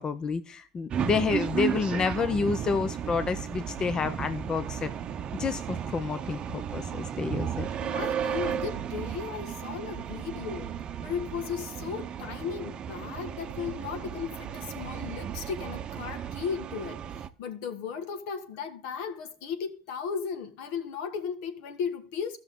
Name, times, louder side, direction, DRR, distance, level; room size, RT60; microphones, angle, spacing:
voice 1, 0.0-4.9 5.4-7.7, left 5 dB, 30° left, 0.6 m, -29 dB
sound 1, 0.9-17.3, right 8 dB, 40° right, 0.7 m, -34 dB
voice 2, 7.8-10.7 11.0-22.4, left 6 dB, 75° left, 1.4 m, -36 dB
14.5 x 6.1 x 3.7 m
supercardioid pair, 95°, 2 cm